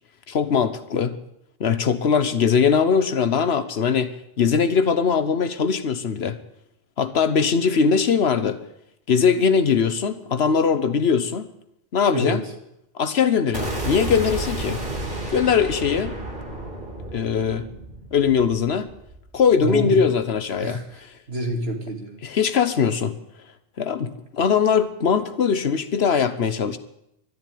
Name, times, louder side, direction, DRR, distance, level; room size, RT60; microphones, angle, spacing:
voice 1, 0.3-1.1 1.6-6.4 7.0-8.6 9.1-11.5 11.9-12.4 12.9-14.8 15.3-16.2 17.1-17.6 18.1-18.9 19.3-20.8 22.2-23.2 23.8-26.8, left 6 dB, 90° left, 12 dB, 1.3 m, -21 dB
sound 1, 13.5-19.6, right 2 dB, 60° right, 3.2 m, -31 dB
voice 2, 19.6-20.1 20.6-22.2, right 1 dB, 80° right, 2 dB, 2.6 m, -27 dB
12.5 x 10.5 x 9.3 m, 0.81 s
omnidirectional pair, 1.0 m